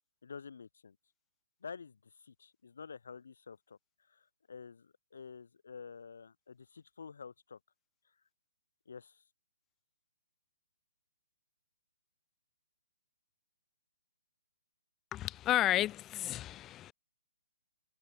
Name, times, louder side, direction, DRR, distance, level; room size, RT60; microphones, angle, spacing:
voice 1, 0.2-1.0 1.6-3.8 4.1-7.6 8.9-9.2, left 5 dB, 75° left, 7.3 m, -49 dB
voice 2, 15.1-16.9, left 13 dB, 20° left, 1.0 m, -32 dB
hypercardioid pair, 150°, 0 cm